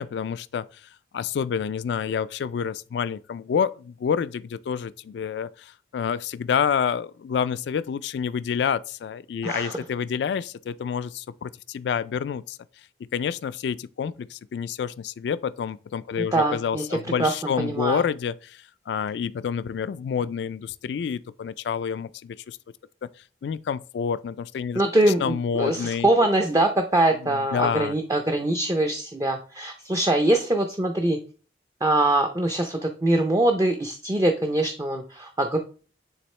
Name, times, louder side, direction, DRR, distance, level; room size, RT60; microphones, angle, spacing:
voice 1, 0.0-12.6 13.1-22.6 23.0-23.1 23.4-24.8 25.2-26.1 27.2-28.0, left 7 dB, 75° left, 0.3 m, -28 dB
voice 2, 9.4-9.8 16.3-17.3 17.6-18.0 24.7-31.2 31.8-35.6, right 1 dB, 20° right, 0.5 m, -23 dB
9.7 x 3.5 x 3.2 m
head